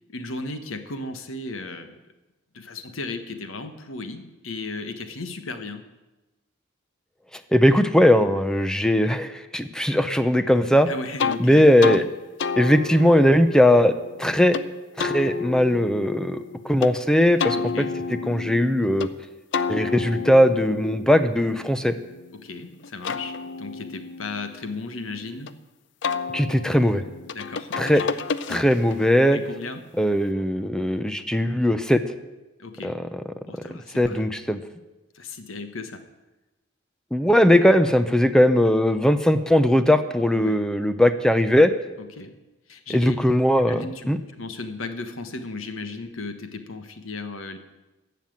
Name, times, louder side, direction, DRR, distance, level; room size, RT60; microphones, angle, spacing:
voice 1, 0.1-2.0 2.5-5.8 10.9-12.1 17.5-18.0 22.3-25.6 27.3-28.2 29.3-30.1 32.6-33.0 33.5-34.2 35.1-36.0 40.3-40.6 42.0-42.4 42.7-43.2 43.5-47.6, left 3 dB, 85° left, 8 dB, 1.3 m, -35 dB
voice 2, 7.5-10.9 11.4-12.0 12.6-13.9 14.2-14.6 15.0-17.9 18.3-19.1 19.7-21.9 26.3-27.0 27.8-28.0 28.5-29.4 30.0-32.0 32.8-33.0 34.0-34.6 37.1-41.7 42.9-44.2, equal, 5° left, 10 dB, 0.6 m, -19 dB
sound 1, 11.2-11.4 11.8-12.0 12.4-14.6 15.0-16.9 17.4-19.1 19.5-22.4 22.8-25.5 26.0-29.0, left 5 dB, 60° left, 0.5 m, -31 dB
14.5 x 5.9 x 9.0 m, 1.1 s
head